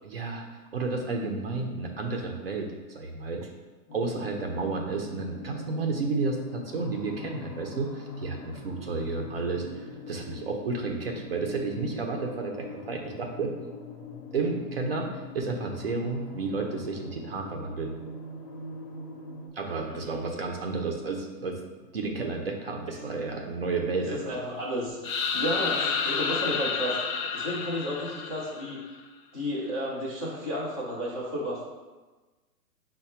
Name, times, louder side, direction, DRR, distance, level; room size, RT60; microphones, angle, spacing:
voice 1, 0.0-0.4 0.7-3.5 3.9-13.5 14.3-17.9 19.5-21.6 21.9-24.3, right 3 dB, 40° right, 1 dB, 0.4 m, -31 dB
sound 1, 3.9-19.5, left 2 dB, 90° left, 0.9 m, -43 dB
voice 2, 19.9-20.2 24.1-25.0 25.3-27.0 27.3-28.8 29.3-31.7, equal, 25° left, -8 dB, 0.3 m, -32 dB
sound 2, 25.0-28.9, left 6 dB, 60° left, 0.6 m, -30 dB
5.6 x 2.1 x 4.2 m, 1.2 s
hypercardioid pair, 155°, 47 cm